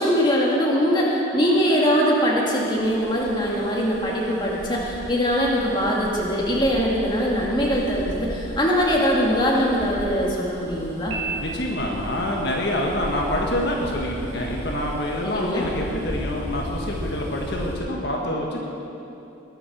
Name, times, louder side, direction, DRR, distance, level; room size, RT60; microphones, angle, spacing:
voice 1, 0.0-11.1 15.2-15.7, equal, 25° left, -4 dB, 2.0 m, -22 dB
Bus, 2.7-17.8, equal, 40° right, 3.8 m, -36 dB
Piano, 11.1-12.2, right 4 dB, 70° right, 2.1 m, -32 dB
voice 2, 11.4-18.6, left 1 dB, 55° left, -2 dB, 1.6 m, -26 dB
20.5 x 7.8 x 6.1 m, 3.0 s
head